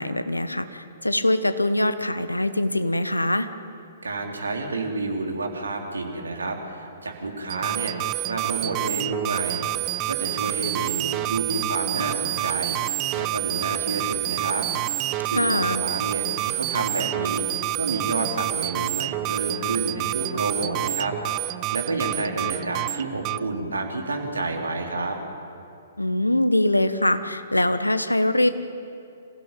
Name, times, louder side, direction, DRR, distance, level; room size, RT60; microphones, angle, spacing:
voice 1, 0.0-3.5 15.3-15.8 26.0-28.5, left 1 dB, 90° left, 11 dB, 1.3 m, -23 dB
voice 2, 4.0-9.7 10.1-14.7 15.2-17.5 17.8-21.1 21.7-25.2, right 3 dB, 75° right, 2 dB, 3.7 m, -29 dB
sound 1, 7.5-23.4, right 17 dB, 30° right, 0.5 m, -28 dB
26.0 x 15.5 x 9.0 m, 2.5 s
figure-of-eight pair, 120°, 0 cm